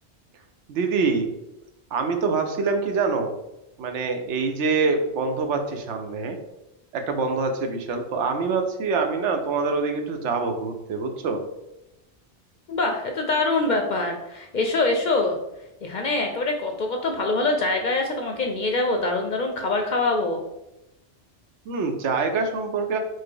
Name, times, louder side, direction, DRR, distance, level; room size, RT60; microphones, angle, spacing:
voice 1, 0.7-1.3 1.9-3.3 3.8-6.4 6.9-11.4 21.7-23.0, right 4 dB, 85° right, 5 dB, 1.0 m, -25 dB
voice 2, 12.7-15.4 15.8-20.4, left 2 dB, 60° left, 3 dB, 0.5 m, -24 dB
4.5 x 2.1 x 4.6 m, 0.92 s
omnidirectional pair, 1.2 m